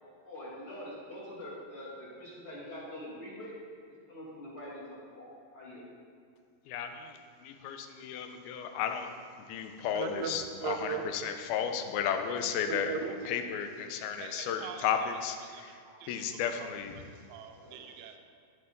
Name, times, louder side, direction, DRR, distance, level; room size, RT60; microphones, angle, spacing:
voice 1, 0.0-3.5 4.1-4.8 5.1-5.8 13.0-13.2 17.6-17.9, left 1 dB, 40° left, -8 dB, 2.5 m, -45 dB
voice 2, 6.7-9.2 9.5-12.9 13.3-15.8 16.1-17.0, left 8 dB, 85° left, 6 dB, 2.6 m, -34 dB
voice 3, 9.9-11.3 12.7-13.2 14.1-14.9 15.4-16.2 16.6-18.2, right 7 dB, 90° right, 5 dB, 1.6 m, -40 dB
10.5 x 7.9 x 3.9 m, 2.3 s
omnidirectional pair, 4.3 m